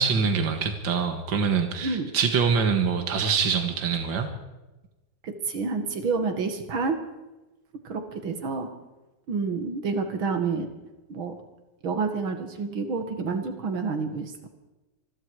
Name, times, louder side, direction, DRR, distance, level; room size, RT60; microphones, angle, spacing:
voice 1, 0.0-4.3, right 6 dB, 70° right, 6 dB, 2.4 m, -24 dB
voice 2, 1.8-2.1 5.2-7.0 7.8-8.7 9.3-10.7 11.1-11.3 11.8-14.3, right 4 dB, 85° right, 6 dB, 2.8 m, -28 dB
26.5 x 21.0 x 4.9 m, 1.1 s
omnidirectional pair, 2.1 m